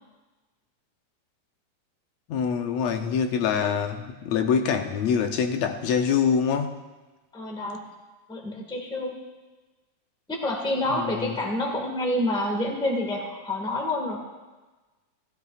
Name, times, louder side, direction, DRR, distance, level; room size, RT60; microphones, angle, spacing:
voice 1, 2.3-6.7 10.9-11.3, left 7 dB, 75° left, 5 dB, 1.9 m, -25 dB
voice 2, 7.3-7.8 8.3-9.2 10.3-14.2, left 1 dB, 5° left, 0 dB, 0.9 m, -28 dB
15.5 x 15.5 x 2.4 m, 1.2 s
omnidirectional pair, 3.3 m